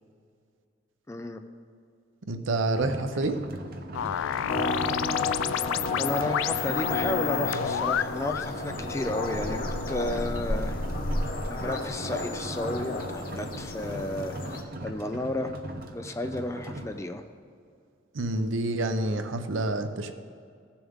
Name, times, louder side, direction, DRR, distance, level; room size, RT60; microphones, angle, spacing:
voice 1, 1.1-1.4 6.0-10.8 11.5-15.5 15.9-17.2, left 1 dB, 15° left, 7 dB, 0.4 m, -32 dB
voice 2, 2.3-3.4 18.1-20.1, right 2 dB, 85° right, 8 dB, 0.7 m, -28 dB
sound 1, 2.7-17.0, right 1 dB, 50° right, 0.7 m, -40 dB
sound 2, 3.9-8.5, left 10 dB, 85° left, 0.3 m, -30 dB
sound 3, 4.5-14.6, left 2 dB, 45° left, 0.8 m, -32 dB
15.5 x 7.0 x 3.6 m, 2.3 s
head